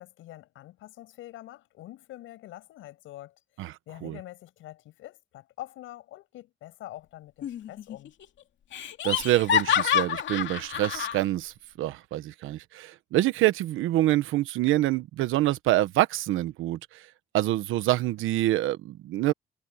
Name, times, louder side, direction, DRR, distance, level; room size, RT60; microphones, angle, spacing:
voice 1, 0.0-8.1, left 15 dB, 90° left, 7.3 m, -45 dB
voice 2, 3.6-4.2 9.0-17.0 17.3-19.3, right 15 dB, 90° right, 1.1 m, -26 dB
Laughter, 7.4-8.0 8.2-8.3 8.7-11.2, left 9 dB, 70° left, 2.5 m, -27 dB
cardioid pair, 90°, 20 cm